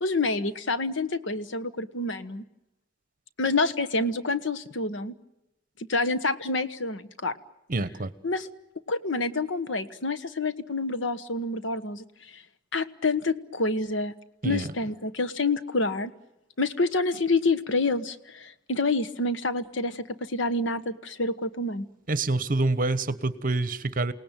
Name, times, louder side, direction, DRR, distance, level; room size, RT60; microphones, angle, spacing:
voice 1, 0.0-2.4 3.4-5.1 5.9-7.4 8.2-8.5 8.9-12.4 12.7-14.1 14.4-16.1 16.6-21.9, left 3 dB, 75° left, 13 dB, 1.3 m, -28 dB
voice 2, 7.7-8.1 14.4-14.7 22.1-24.1, right 2 dB, 45° right, 14 dB, 1.2 m, -26 dB
28.5 x 18.5 x 9.1 m, 0.93 s
head